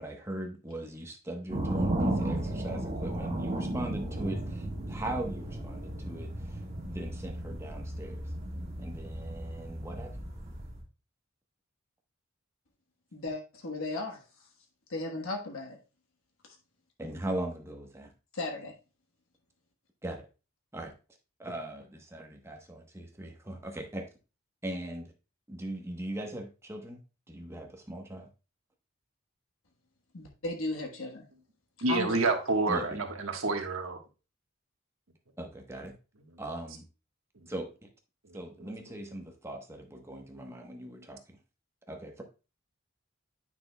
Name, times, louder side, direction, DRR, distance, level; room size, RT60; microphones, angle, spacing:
voice 1, 0.0-8.3 8.8-10.2 17.0-18.1 20.0-20.3 20.7-20.9 21.4-24.0 24.6-25.1 25.5-27.0 27.3-28.3 32.7-33.0 35.4-35.9 36.4-36.8 37.5-37.9 38.3-41.4 41.9-42.2, right 1 dB, 15° right, 1.0 m, -39 dB
sound 1, 1.5-10.8, right 1 dB, 30° right, 1.7 m, -34 dB
voice 2, 13.1-14.2 14.9-15.8 16.4-16.6 18.3-18.7 30.1-31.2 31.9-32.2, left 2 dB, 85° left, 1.3 m, -35 dB
voice 3, 31.8-34.0 37.4-37.5 38.2-38.7, right 3 dB, 85° right, 1.3 m, -29 dB
9.6 x 6.0 x 2.2 m
head